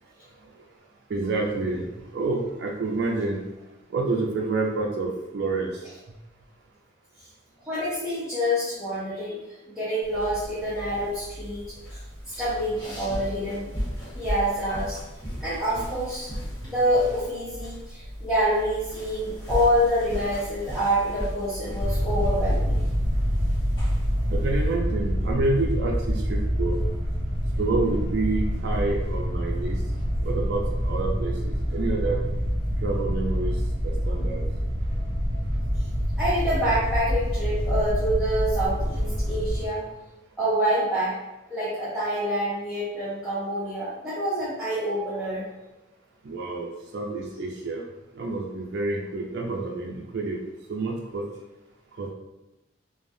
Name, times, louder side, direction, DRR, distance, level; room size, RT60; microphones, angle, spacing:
voice 1, 1.1-1.8 2.1-3.4 3.9-5.7 24.3-26.8 27.5-29.8 30.2-32.2 32.8-33.5 33.8-34.4 46.3-47.8 48.2-50.4 50.7-51.2 52.0-52.1, right 3 dB, 55° right, -1 dB, 0.4 m, -28 dB
voice 2, 7.6-9.4 9.7-12.0 12.3-13.7 14.1-15.0 15.4-16.3 16.6-22.8 35.8-35.9 36.2-39.8 40.4-41.2 41.5-45.5, equal, 5° right, -12 dB, 0.7 m, -27 dB
sound 1, 10.0-24.7, equal, 20° left, 1.0 m, -36 dB
sound 2, 21.8-39.7, equal, 35° right, 1.0 m, -26 dB
3.2 x 2.0 x 2.6 m, 0.97 s
head